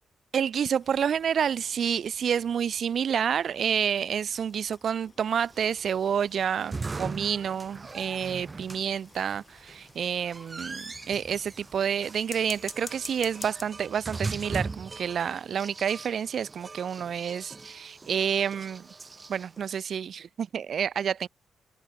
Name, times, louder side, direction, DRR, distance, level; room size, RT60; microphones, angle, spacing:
voice 1, 0.3-18.8 19.3-21.3, right 8 dB, 55° right, 0.5 m, -29 dB
sound 1, 0.8-13.6, left 4 dB, 30° left, 2.1 m, -50 dB
sound 2, 5.4-19.7, right 3 dB, 25° right, 0.9 m, -40 dB
wide cardioid pair, 140°, 0 cm